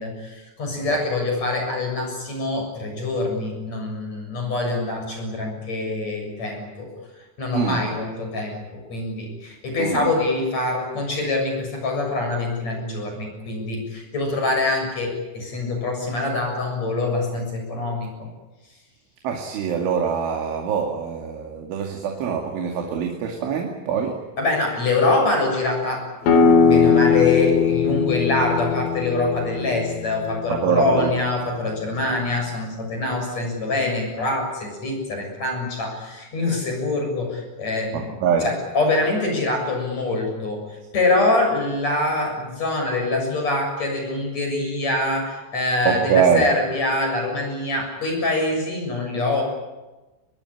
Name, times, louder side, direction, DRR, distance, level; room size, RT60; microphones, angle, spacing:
voice 1, 0.0-6.9 7.4-18.3 24.4-38.2 38.4-40.6 40.9-49.4, left 2 dB, 35° left, 2 dB, 8.1 m, -24 dB
voice 2, 9.8-10.1 19.2-24.2 30.5-31.2 37.9-38.5 45.9-46.5, right 7 dB, 80° right, 2 dB, 4.8 m, -23 dB
sound 1, 26.2-31.6, left 5 dB, 90° left, 5.8 m, -20 dB
25.0 x 20.5 x 10.0 m, 1.1 s
omnidirectional pair, 5.5 m